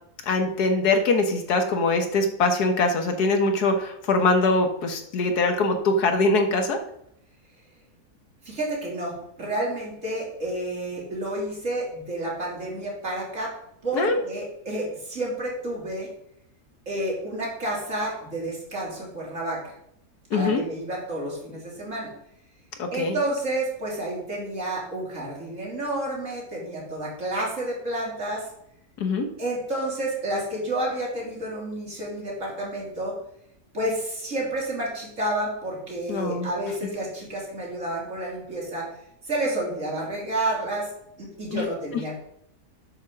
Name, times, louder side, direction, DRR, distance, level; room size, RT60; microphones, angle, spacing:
voice 1, 0.2-6.8 13.9-14.2 20.3-20.6 22.8-23.2 29.0-29.3 36.1-36.5 41.5-41.7, left 3 dB, 75° left, 6 dB, 1.6 m, -23 dB
voice 2, 8.4-13.5 13.8-16.1 16.9-19.8 20.3-22.1 22.9-28.5 29.4-33.2 33.7-38.9 39.2-40.9 41.2-42.2, right 1 dB, 50° right, -4 dB, 3.2 m, -30 dB
7.9 x 5.4 x 6.2 m, 0.74 s
omnidirectional pair, 1.7 m